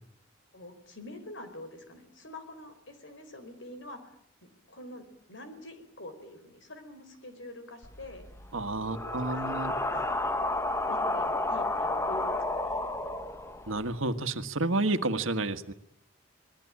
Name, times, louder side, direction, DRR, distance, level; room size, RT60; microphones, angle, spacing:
voice 1, 0.5-4.0 4.7-8.3 8.9-10.2 10.9-12.9, left 1 dB, 65° left, 9 dB, 4.4 m, -45 dB
sound 1, 7.8-14.0, left 2 dB, 15° left, 1.3 m, -32 dB
voice 2, 8.5-9.7 13.7-15.7, right 2 dB, 85° right, 9 dB, 1.7 m, -30 dB
27.5 x 20.5 x 8.8 m, 0.69 s
head